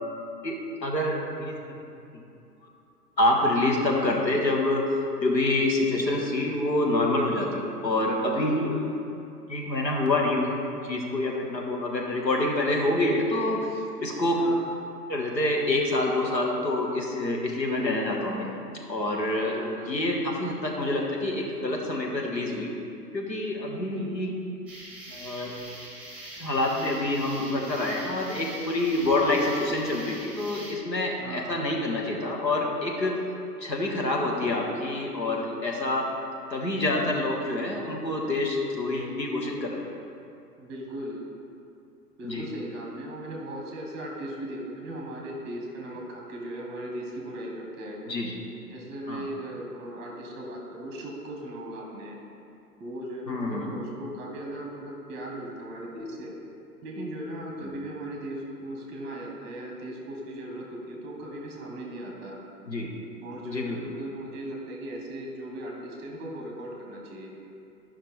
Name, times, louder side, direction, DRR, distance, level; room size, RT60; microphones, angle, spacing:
voice 1, 0.8-1.8 2.1-2.2 3.2-8.8 9.5-10.5 10.8-14.4 15.1-18.5 18.9-19.5 19.9-22.7 23.1-24.3 25.1-25.5 26.3-33.2 33.6-36.1 36.5-39.8 42.2-42.4 48.1-48.4 49.1-49.2 53.3-53.7 57.6-57.7 62.7-62.9 63.5-63.8, left 2 dB, 85° left, -1 dB, 1.5 m, -27 dB
voice 2, 8.4-8.9 14.4-14.6 19.5-19.9 23.9-24.1 31.2-31.6 40.6-41.2 42.2-48.0 48.7-52.2 52.8-56.3 56.8-62.4 63.2-67.3, right 1 dB, 20° right, -1 dB, 1.3 m, -38 dB
sound 1, 24.7-30.7, right 1 dB, ahead, 1.7 m, -43 dB
11.5 x 5.6 x 3.4 m, 2.6 s
figure-of-eight pair, 115°, 49 cm